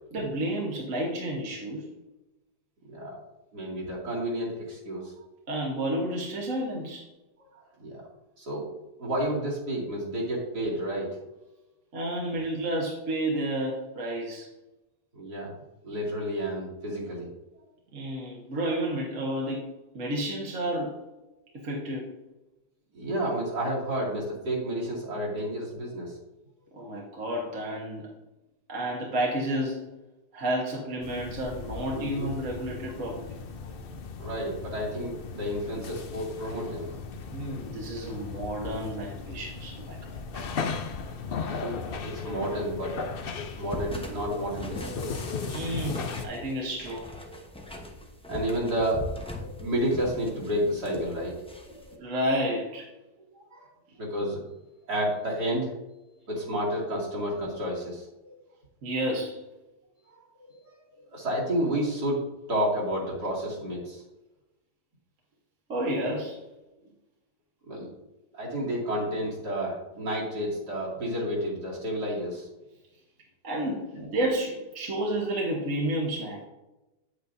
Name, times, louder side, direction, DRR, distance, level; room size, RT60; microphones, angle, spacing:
voice 1, 0.1-1.9 5.5-7.0 11.9-14.5 17.9-19.7 19.9-21.0 21.5-22.1 26.7-28.1 28.7-29.9 30.3-33.4 37.3-40.4 45.5-47.1 52.0-52.9 58.8-59.4 65.7-66.4 73.4-76.4, right 1 dB, 50° right, -3 dB, 1.6 m, -31 dB
voice 2, 3.5-5.1 7.8-8.0 8.4-8.6 9.0-11.1 15.1-15.5 15.8-17.3 22.9-26.1 31.9-32.3 33.7-33.8 34.2-36.9 40.9-41.8 42.0-43.0 43.6-45.1 47.3-47.8 48.3-52.0 53.5-53.7 54.0-54.4 54.9-55.7 56.3-58.1 60.4-60.6 61.1-62.2 62.5-64.0 67.7-67.9 68.3-72.5 74.0-74.1, equal, 70° right, -5 dB, 3.1 m, -31 dB
sound 1, 31.0-46.3, left 5 dB, 80° left, 0.5 m, -37 dB
sound 2, 43.7-51.9, left 1 dB, 10° left, 0.4 m, -41 dB
8.5 x 8.3 x 2.7 m, 1.0 s
omnidirectional pair, 1.8 m